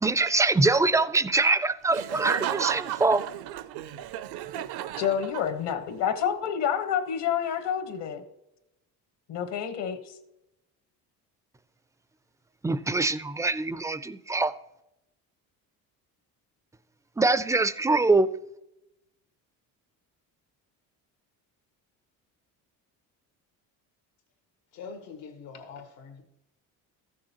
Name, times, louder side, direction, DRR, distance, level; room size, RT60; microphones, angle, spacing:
voice 1, 0.0-3.2 12.6-14.5 17.2-18.3, right 3 dB, 10° right, 0.3 m, -23 dB
Laughter, 1.9-5.8, right 13 dB, 60° right, 0.5 m, -34 dB
voice 2, 5.0-8.2 9.3-10.1, left 8 dB, 70° left, 1.4 m, -28 dB
voice 3, 24.7-26.2, left 5 dB, 85° left, 1.7 m, -43 dB
14.0 x 6.5 x 2.9 m
supercardioid pair, 75°, 43 cm